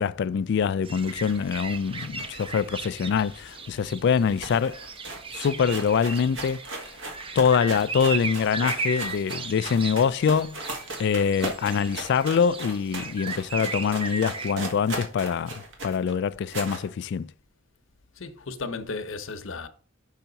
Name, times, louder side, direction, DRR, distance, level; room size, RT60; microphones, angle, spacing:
voice 1, 0.0-4.8 5.3-6.6 7.4-10.6 11.0-17.3, left 6 dB, 55° left, 0.3 m, -24 dB
sound 1, 0.8-14.5, right 4 dB, 25° right, 0.6 m, -37 dB
sound 2, 1.0-3.6 3.9-4.0 4.2-16.9, right 2 dB, 70° right, 1.7 m, -38 dB
voice 2, 1.8-2.6 3.6-4.0 5.3-5.4 7.2-7.3 18.1-19.7, left 3 dB, 70° left, 0.8 m, -37 dB
5.7 x 5.6 x 3.9 m
head